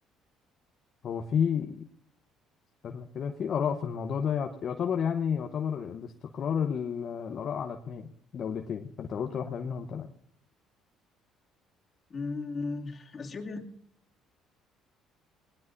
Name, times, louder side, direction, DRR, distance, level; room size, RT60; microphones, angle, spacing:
voice 1, 1.0-1.8 2.8-10.1, left 7 dB, 55° left, 5 dB, 1.0 m, -31 dB
voice 2, 12.1-13.7, left 3 dB, 40° left, 2 dB, 2.5 m, -36 dB
21.5 x 18.5 x 2.7 m, 0.68 s
supercardioid pair, 65°, 0 cm